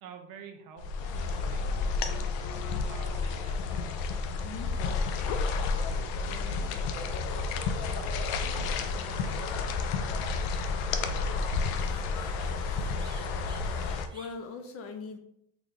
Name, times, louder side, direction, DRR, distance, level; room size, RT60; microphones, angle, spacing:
voice 1, 0.0-3.8 6.2-6.8 7.8-9.7 11.0-11.5, right 6 dB, 70° right, 4 dB, 0.7 m, -50 dB
sound 1, 0.8-14.1, left 4 dB, 90° left, 0.5 m, -31 dB
sound 2, 1.0-1.6 1.9-2.0 2.2-3.6 4.1-4.4 5.0-5.8 9.1-9.3 10.8-14.3, right 2 dB, 15° right, 0.6 m, -55 dB
voice 2, 4.4-5.4 7.0-7.9 13.7-15.2, left 4 dB, 40° left, 6 dB, 0.4 m, -44 dB
4.0 x 2.3 x 3.3 m, 0.73 s
cardioid pair, 140°, 37 cm